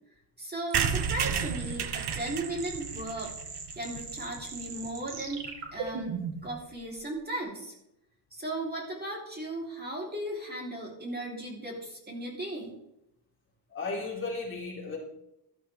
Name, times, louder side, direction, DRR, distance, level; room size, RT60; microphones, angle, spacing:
voice 1, 0.4-3.3 3.7-6.2 6.4-7.7 8.3-12.8, right 1 dB, 20° right, -2 dB, 3.1 m, -36 dB
sound 1, 0.7-4.4 4.9-5.0 5.1-5.2 5.5-5.6 5.8-6.0, right 7 dB, 65° right, 1.3 m, -32 dB
sound 2, 0.7-6.5, right 6 dB, 80° right, 2.9 m, -40 dB
voice 2, 13.7-15.0, left 3 dB, 30° left, -3 dB, 3.5 m, -34 dB
14.0 x 13.5 x 3.3 m, 0.82 s
wide cardioid pair, 165°, 43 cm